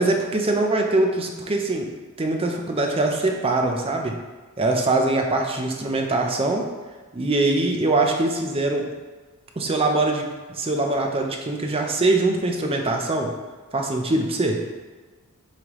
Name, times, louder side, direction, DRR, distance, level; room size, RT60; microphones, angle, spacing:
voice 1, 0.0-1.9 2.2-4.2 4.6-6.7 7.1-8.9 9.6-10.2 10.5-13.3 13.7-14.6, right 2 dB, 25° right, 2 dB, 0.6 m, -22 dB
9.5 x 3.4 x 3.0 m, 1.3 s
head